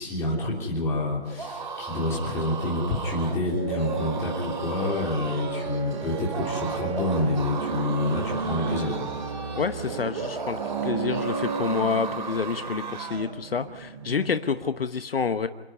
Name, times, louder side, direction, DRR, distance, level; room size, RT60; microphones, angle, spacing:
voice 1, 0.0-9.1, left 2 dB, 10° left, -3 dB, 3.2 m, -28 dB
sound 1, 1.3-13.4, right 4 dB, 45° right, 2.8 m, -36 dB
sound 2, 3.1-14.3, right 5 dB, 25° right, 1.4 m, -34 dB
voice 2, 9.6-15.5, left 5 dB, 60° left, 10 dB, 1.1 m, -28 dB
28.0 x 10.0 x 9.6 m, 1.2 s
hypercardioid pair, 165°, 32 cm